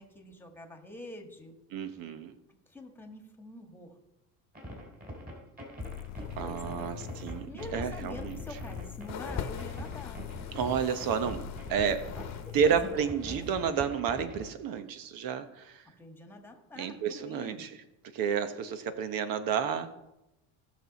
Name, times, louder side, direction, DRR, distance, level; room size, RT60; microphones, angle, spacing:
voice 1, 0.0-1.6 2.5-4.0 6.1-7.0 7.5-10.3 12.2-13.5 15.8-17.7, left 1 dB, 5° left, 4 dB, 1.6 m, -46 dB
voice 2, 1.7-2.3 6.4-8.4 10.5-12.1 12.5-15.8 16.8-17.7 18.1-19.9, right 7 dB, 65° right, 10 dB, 1.1 m, -31 dB
sound 1, 4.5-14.5, equal, 25° right, 3.8 m, -43 dB
sound 2, 5.8-13.1, left 15 dB, 85° left, 0.5 m, -43 dB
sound 3, 9.1-12.5 12.8-13.7 14.4-14.5, left 8 dB, 45° left, 1.0 m, -43 dB
16.5 x 6.2 x 4.2 m, 0.91 s
cardioid pair, 115°, 36 cm